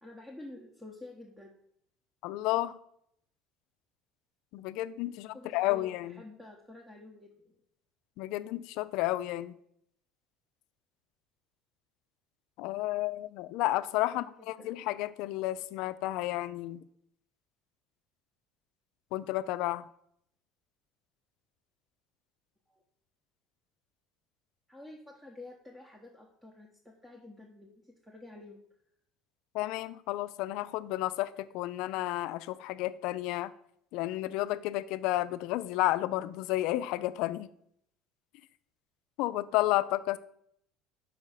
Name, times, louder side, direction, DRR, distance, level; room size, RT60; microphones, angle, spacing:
voice 1, 0.0-1.5 5.1-7.6 14.1-14.7 22.7-22.8 24.7-28.6, left 2 dB, 5° right, 0.8 m, -50 dB
voice 2, 2.2-2.8 4.5-6.2 8.2-9.5 12.6-16.8 19.1-19.9 29.5-33.5 33.9-37.5 39.2-40.2, left 16 dB, 75° left, 0.3 m, -31 dB
5.4 x 3.9 x 5.6 m
supercardioid pair, 110°, 0 cm